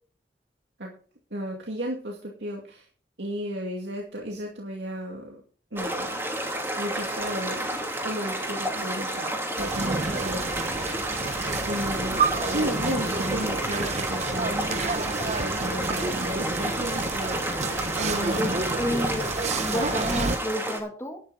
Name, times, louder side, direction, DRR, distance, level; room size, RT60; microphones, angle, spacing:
voice 1, 1.3-2.9 3.2-5.4 5.7-6.1 6.8-10.7 11.7-12.3 12.5-14.7 15.3-16.7 18.0-18.6, right 1 dB, 85° right, -1 dB, 2.6 m, -34 dB
sound 1, 5.8-20.8, right 1 dB, 15° right, 2.9 m, -31 dB
sound 2, 9.6-20.4, right 3 dB, 40° right, 0.8 m, -30 dB
voice 2, 18.8-19.3 19.6-21.2, left 1 dB, 15° left, 4 dB, 1.7 m, -30 dB
12.0 x 11.0 x 4.2 m, 0.41 s
head